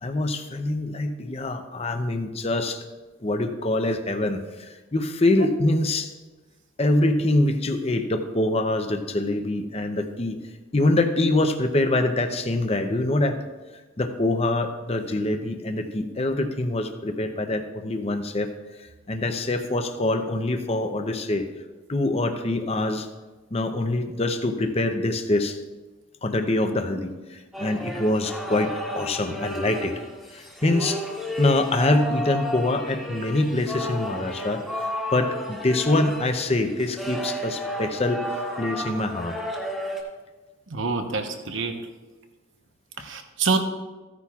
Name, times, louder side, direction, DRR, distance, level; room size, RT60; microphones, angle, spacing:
voice 1, 0.0-2.8 3.2-6.1 6.8-10.4 10.7-13.4 14.0-18.5 18.8-21.5 21.9-23.1 23.5-25.6 26.2-30.0 30.3-31.0 31.4-39.4 43.0-43.1, left 2 dB, 30° left, 7 dB, 0.6 m, -25 dB
sound 1, 27.5-40.0, equal, ahead, 1.4 m, -33 dB
voice 2, 40.7-41.8 43.0-43.6, right 4 dB, 65° right, 5 dB, 1.0 m, -26 dB
15.0 x 9.8 x 2.4 m, 1.2 s
head